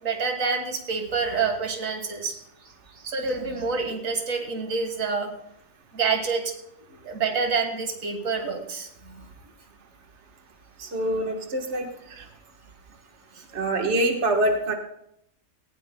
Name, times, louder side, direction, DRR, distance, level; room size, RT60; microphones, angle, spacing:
voice 1, 0.0-5.3 5.9-6.6 7.0-9.3 13.3-13.4, right 5 dB, 90° right, 4 dB, 2.0 m, -28 dB
voice 2, 10.8-12.2 13.5-14.7, right 1 dB, 60° right, 3 dB, 1.6 m, -25 dB
18.5 x 17.5 x 2.2 m, 0.75 s
omnidirectional pair, 1.3 m